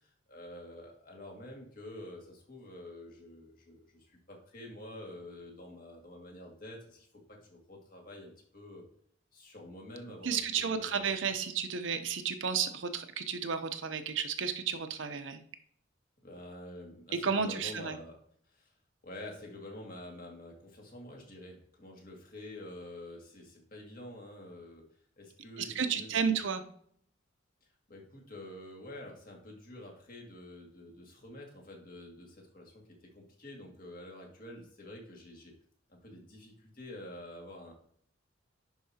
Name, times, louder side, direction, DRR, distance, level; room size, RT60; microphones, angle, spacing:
voice 1, 0.0-8.9 9.3-11.2 16.2-18.2 18.5-18.7 19.0-24.9 25.2-26.4 27.9-35.5 35.9-37.7, left 1 dB, 45° left, 0 dB, 2.0 m, -48 dB
voice 2, 10.2-15.4 17.1-17.9 25.6-26.6, right 6 dB, 70° right, 8 dB, 0.7 m, -32 dB
10.5 x 4.8 x 2.8 m, 0.63 s
head